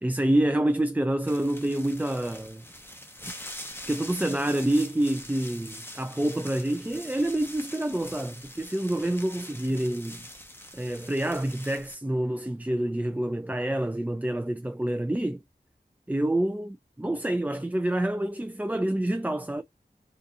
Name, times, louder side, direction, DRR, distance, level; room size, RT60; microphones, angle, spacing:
voice 1, 0.0-2.6 3.9-10.2 10.7-15.4 16.1-19.6, right 1 dB, 10° right, 0.4 m, -27 dB
sound 1, 1.3-11.9, left 1 dB, 15° left, 0.9 m, -43 dB
4.0 x 2.6 x 2.4 m
wide cardioid pair, 40°, 17 cm